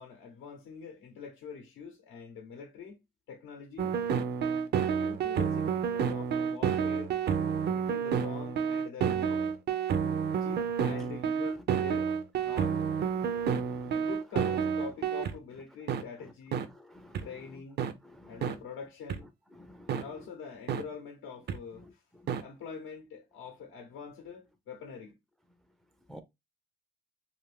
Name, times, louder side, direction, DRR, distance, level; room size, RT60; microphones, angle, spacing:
voice 1, 0.0-3.0 3.3-4.0 4.9-7.1 7.7-9.5 10.4-12.1 12.4-12.8 13.8-16.6 17.2-17.8 18.3-19.3 19.9-22.0 22.4-25.2, left 5 dB, 80° left, 0.7 m, -45 dB
sound 1, 3.8-15.3 15.9-16.0 16.5-16.6 17.1-17.2 17.8-17.9 18.4-18.5 19.1-19.2 19.9-20.0 20.7-20.8 21.5-21.6 22.3-22.4, right 7 dB, 55° right, 0.5 m, -29 dB
voice 2, 13.1-14.1 16.0-16.1 16.7-17.3 18.0-18.5 19.5-20.0 26.1-26.2, left 1 dB, ahead, 0.4 m, -52 dB
2.5 x 2.5 x 3.3 m
cardioid pair, 90°, 20 cm